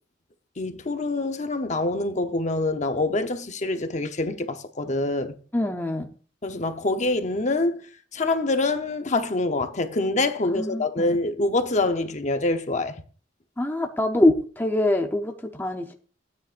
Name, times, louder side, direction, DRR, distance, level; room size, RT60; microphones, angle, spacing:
voice 1, 0.6-5.4 6.4-7.9 8.1-13.0, left 2 dB, 40° left, 0.9 m, -25 dB
voice 2, 5.5-6.1 10.5-11.1 13.6-15.9, left 1 dB, 10° left, 0.8 m, -24 dB
16.0 x 9.4 x 2.5 m
head